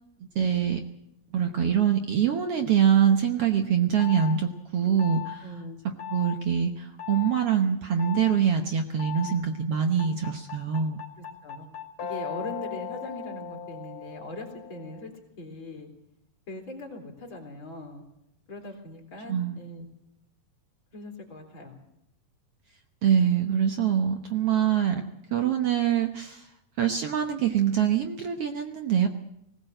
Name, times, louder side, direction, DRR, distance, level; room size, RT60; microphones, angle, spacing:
voice 1, 0.3-0.8 1.3-5.4 6.1-11.0 19.3-19.6 23.0-25.0 25.3-26.5 26.8-29.1, right 8 dB, 60° right, 5 dB, 1.7 m, -24 dB
sound 1, 4.0-4.3 5.0-5.4 6.0-6.4 7.0-7.3 8.0-8.3 9.0-9.4 10.0-15.1, left 9 dB, 55° left, 3.3 m, -37 dB
voice 2, 5.4-5.8 11.2-11.7 12.0-15.9 16.5-18.0 18.5-19.9 20.9-21.8, left 2 dB, 40° left, 1 dB, 3.8 m, -40 dB
20.0 x 17.0 x 7.8 m, 0.82 s
omnidirectional pair, 3.7 m